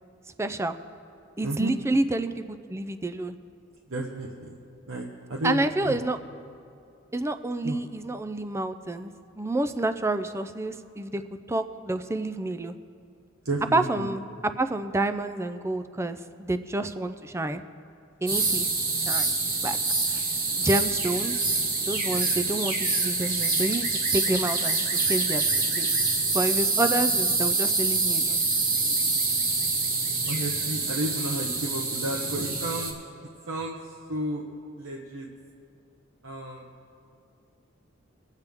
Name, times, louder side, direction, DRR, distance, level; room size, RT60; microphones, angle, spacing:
voice 1, 0.4-0.8 1.4-3.4 5.4-6.2 7.1-12.8 13.6-17.6 18.2-19.4 19.6-19.8 20.1-20.2 20.6-21.4 21.9-25.9 26.3-28.4, right 2 dB, 15° right, 10 dB, 0.4 m, -29 dB
voice 2, 1.4-1.7 3.9-4.6 4.9-6.0 7.6-7.8 13.4-14.1 18.3-18.5 30.3-33.0 33.5-33.8 34.1-34.4 34.8-35.3 36.2-36.7, right 1 dB, 75° right, -1 dB, 1.0 m, -32 dB
sound 1, 18.3-32.9, right 3 dB, 45° right, 1.6 m, -26 dB
23.0 x 8.2 x 3.5 m, 2.5 s
head